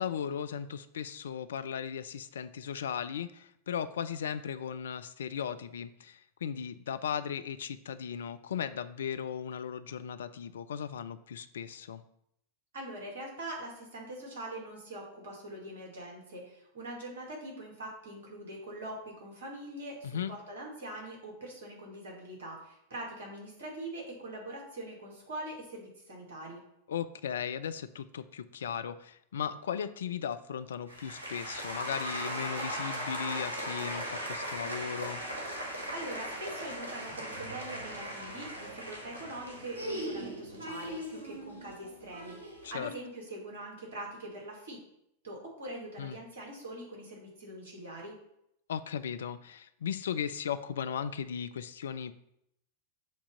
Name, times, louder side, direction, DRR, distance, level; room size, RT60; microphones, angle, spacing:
voice 1, 0.0-12.0 20.0-20.3 26.9-35.2 42.6-42.9 46.0-46.2 48.7-52.1, left 8 dB, 65° left, 13 dB, 0.3 m, -37 dB
voice 2, 12.7-26.6 35.9-44.8 45.2-48.2, right 1 dB, 60° right, -1 dB, 2.0 m, -43 dB
sound 1, 30.9-42.8, equal, 80° right, 1.3 m, -39 dB
7.3 x 2.8 x 5.4 m, 0.77 s
figure-of-eight pair, 90°, 0 cm